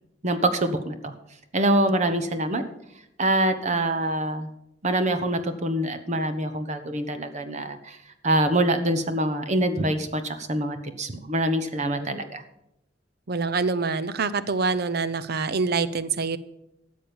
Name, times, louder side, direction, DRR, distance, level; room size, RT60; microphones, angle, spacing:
voice 1, 0.2-1.1 1.5-2.6 3.2-4.5 4.8-8.0 8.2-12.4, right 1 dB, 40° right, 9 dB, 1.1 m, -25 dB
voice 2, 13.3-16.4, right 4 dB, 55° right, 15 dB, 0.7 m, -25 dB
13.5 x 7.5 x 7.1 m, 0.83 s
head